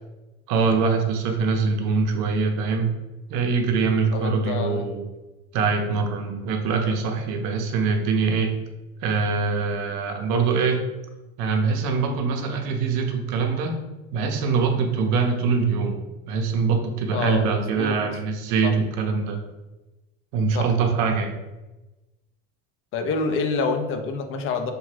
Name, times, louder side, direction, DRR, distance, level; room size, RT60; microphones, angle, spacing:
voice 1, 0.5-3.0 3.3-5.0 5.5-8.5 9.0-10.8 11.4-13.8 14.1-16.0 16.3-19.4 20.3-21.4, right 5 dB, 65° right, 3 dB, 0.6 m, -23 dB
voice 2, 4.1-4.9 17.1-18.0 18.6-18.7 20.5-20.7 22.9-24.7, left 4 dB, 40° left, 6 dB, 0.4 m, -27 dB
2.8 x 2.3 x 3.1 m, 1.1 s
supercardioid pair, 100°, 32 cm